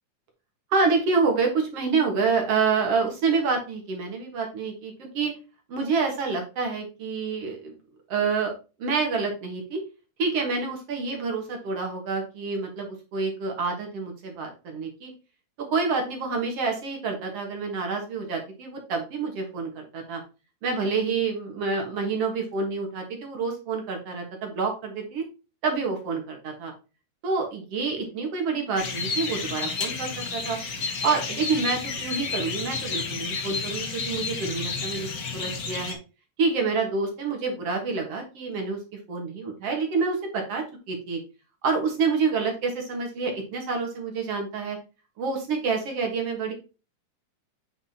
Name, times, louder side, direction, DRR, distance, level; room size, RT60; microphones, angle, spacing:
voice 1, 0.7-5.3 5.7-7.7 8.1-8.5 8.8-9.8 10.2-15.1 15.6-20.2 20.6-25.2 25.6-26.7 27.2-30.6 31.0-35.1 35.3-36.0 36.4-38.8 39.1-41.2 41.6-44.8 45.2-46.5, right 4 dB, 55° right, 2 dB, 2.3 m, -27 dB
sound 1, 28.8-35.9, left 5 dB, 65° left, 0.9 m, -31 dB
8.2 x 5.5 x 2.8 m, 0.31 s
omnidirectional pair, 3.5 m